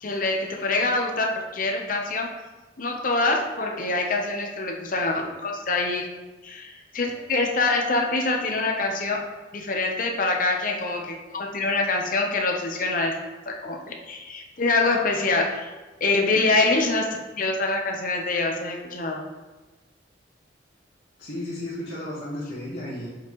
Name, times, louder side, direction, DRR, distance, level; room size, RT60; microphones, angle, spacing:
voice 1, 0.0-2.3 2.8-6.0 6.4-9.2 9.5-13.2 13.5-15.7 16.0-17.1 17.4-19.2, left 3 dB, 45° left, 1 dB, 0.9 m, -25 dB
voice 2, 21.2-23.1, left 1 dB, 65° left, -9 dB, 1.5 m, -33 dB
7.2 x 5.5 x 3.1 m, 1.2 s
head